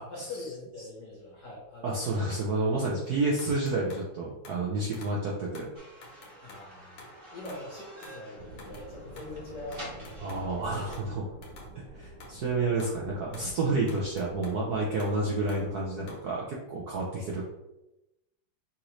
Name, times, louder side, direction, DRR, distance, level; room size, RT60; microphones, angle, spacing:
voice 1, 0.1-2.2 6.4-10.4 12.5-12.6, left 2 dB, 45° left, -4 dB, 1.1 m, -43 dB
voice 2, 1.8-5.7 10.2-11.2 11.8-17.4, right 2 dB, 70° right, -4 dB, 0.9 m, -30 dB
sound 1, 3.4-4.1 4.5-4.6 4.9-5.3 5.6-6.7 7.0-7.7 8.0-8.3 8.6-8.9 9.2-10.5 10.9-11.1 11.4-11.8 12.2-12.4 12.8-13.0 13.3-14.6 15.0-16.3, left 2 dB, 70° left, 1.8 m, -50 dB
sound 2, 5.7-11.0, equal, 35° right, 1.0 m, -49 dB
sound 3, 8.3-16.6, right 2 dB, 55° right, 1.3 m, -49 dB
5.9 x 2.6 x 3.0 m, 0.94 s
omnidirectional pair, 2.3 m